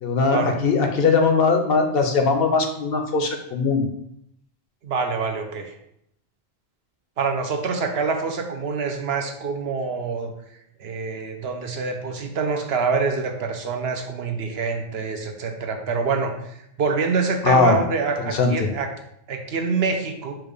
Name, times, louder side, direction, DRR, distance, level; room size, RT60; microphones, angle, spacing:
voice 1, 0.0-3.9 17.4-17.8 18.3-18.7, left 4 dB, 65° left, 4 dB, 0.9 m, -20 dB
voice 2, 4.8-5.7 7.2-10.3 10.8-18.9 19.3-20.4, right 4 dB, 70° right, 4 dB, 0.9 m, -26 dB
4.5 x 2.4 x 4.8 m, 0.75 s
omnidirectional pair, 1.1 m